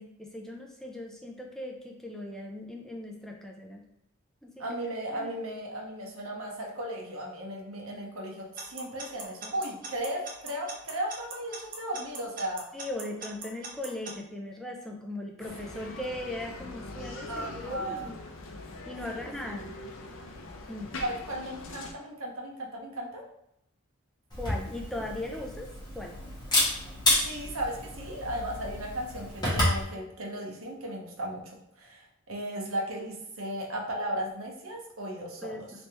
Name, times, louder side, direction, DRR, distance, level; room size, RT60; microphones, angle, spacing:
voice 1, 0.0-3.8 4.4-4.6 5.1-5.3 12.7-18.2 18.9-19.7 20.7-20.9 24.4-26.2 35.4-35.6, left 1 dB, ahead, 1 dB, 0.3 m, -38 dB
voice 2, 4.6-12.6 17.3-18.1 19.1-19.3 21.0-23.2 27.2-31.4 31.8-35.7, right 1 dB, 80° right, 0 dB, 0.8 m, -36 dB
Alarm / Clock, 8.6-14.1, right 3 dB, 40° right, 0.6 m, -39 dB
Bicycle, 15.4-21.9, left 2 dB, 65° left, 0.5 m, -42 dB
Camera, 24.3-29.8, left 1 dB, 20° left, 1.4 m, -30 dB
3.3 x 3.2 x 2.9 m, 0.81 s
head